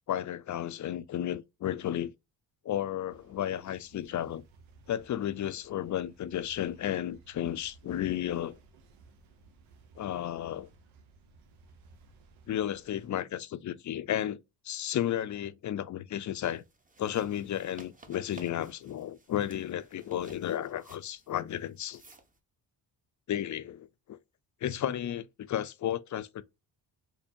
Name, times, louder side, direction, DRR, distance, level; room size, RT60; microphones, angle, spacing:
voice 1, 0.1-2.1 2.6-4.4 4.9-8.6 10.0-10.7 12.5-16.6 17.0-22.0 23.3-24.2 24.6-26.4, left 11 dB, 40° left, 0.5 m, -33 dB
sound 1, 3.1-13.1, right 3 dB, 85° right, 0.9 m, -58 dB
sound 2, 16.4-22.4, right 2 dB, 15° right, 0.8 m, -56 dB
4.3 x 2.7 x 2.6 m
supercardioid pair, 65°, 46 cm